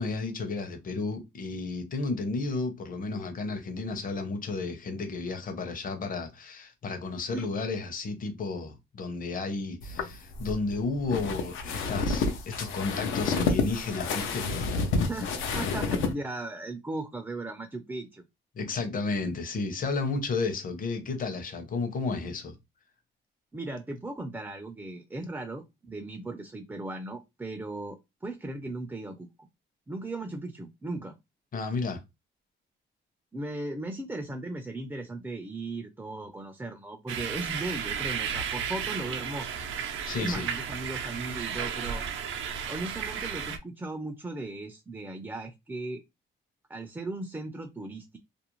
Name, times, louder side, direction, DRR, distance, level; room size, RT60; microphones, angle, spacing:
voice 1, 0.0-14.5 18.5-22.6 31.5-32.0 40.1-40.5, left 3 dB, 45° left, 0.7 m, -32 dB
sound 1, 9.8-16.1, left 4 dB, 85° left, 0.6 m, -29 dB
voice 2, 15.1-18.2 23.5-29.5 29.9-31.1 33.3-39.5 40.2-42.0 42.7-46.0 46.7-48.2, right 2 dB, 10° right, 0.4 m, -37 dB
sound 2, 37.1-43.6, right 7 dB, 80° right, 0.6 m, -33 dB
2.5 x 2.0 x 2.9 m
cardioid pair, 90°, 20 cm